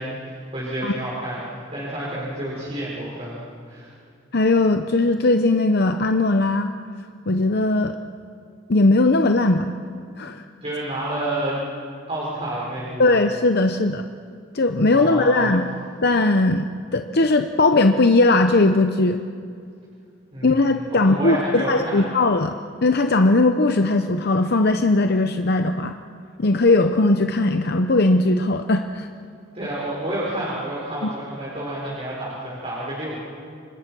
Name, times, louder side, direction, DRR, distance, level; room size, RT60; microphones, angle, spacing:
voice 1, 0.0-3.9 10.6-11.6 12.1-13.1 14.9-15.5 20.3-22.1 29.5-33.2, right 1 dB, 30° right, -6 dB, 4.9 m, -30 dB
voice 2, 4.3-6.7 7.3-8.0 8.7-9.7 10.2-10.4 13.0-14.0 14.5-15.7 16.0-19.2 20.4-22.6 22.8-25.9 26.4-29.1 31.0-31.1, left 2 dB, 55° left, 7 dB, 0.8 m, -19 dB
29.0 x 25.0 x 6.2 m, 2.3 s
head